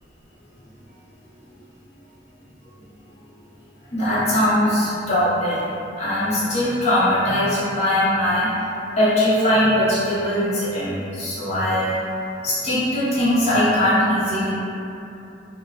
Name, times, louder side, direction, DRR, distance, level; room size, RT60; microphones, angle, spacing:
voice 1, 3.9-8.5 8.9-12.0 12.4-14.5, left 1 dB, 35° left, -12 dB, 0.7 m, -20 dB
2.9 x 2.1 x 2.3 m, 2.8 s
head